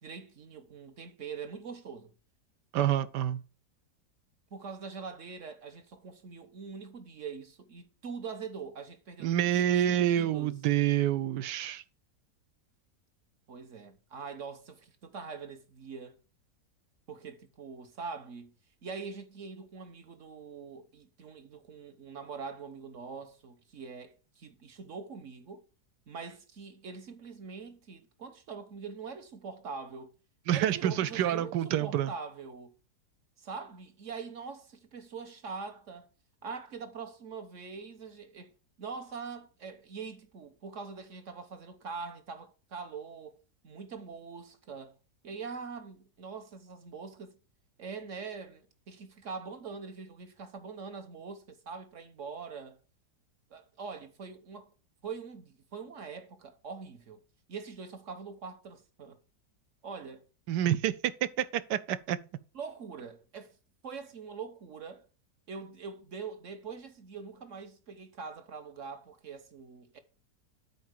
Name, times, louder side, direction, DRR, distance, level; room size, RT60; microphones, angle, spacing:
voice 1, 0.0-2.1 4.5-9.3 9.6-10.6 13.5-16.2 17.1-18.5 18.8-25.6 26.1-30.1 30.5-32.7 33.4-36.1 36.4-38.5 38.8-43.4 43.6-45.0 45.2-47.3 47.8-52.8 53.5-54.7 55.0-57.2 57.5-59.2 59.8-60.3 62.5-63.6 63.8-65.1 65.5-70.0, right 5 dB, 50° right, 1.3 m, -43 dB
voice 2, 2.7-3.4 9.2-11.8 30.5-32.1 60.5-61.1 61.4-62.2, right 11 dB, 75° right, 1.2 m, -28 dB
8.4 x 4.3 x 6.6 m
omnidirectional pair, 1.9 m